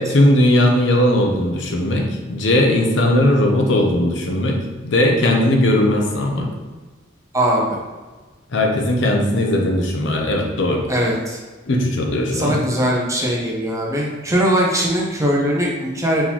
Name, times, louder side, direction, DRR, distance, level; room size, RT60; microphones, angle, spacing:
voice 1, 0.0-4.6 4.8-6.5 8.5-10.8 11.7-12.6, left 1 dB, 65° left, 2 dB, 0.7 m, -18 dB
voice 2, 7.3-7.6 10.9-11.4 12.3-16.3, equal, 15° right, -3 dB, 0.8 m, -20 dB
4.3 x 3.7 x 2.9 m, 1.3 s
head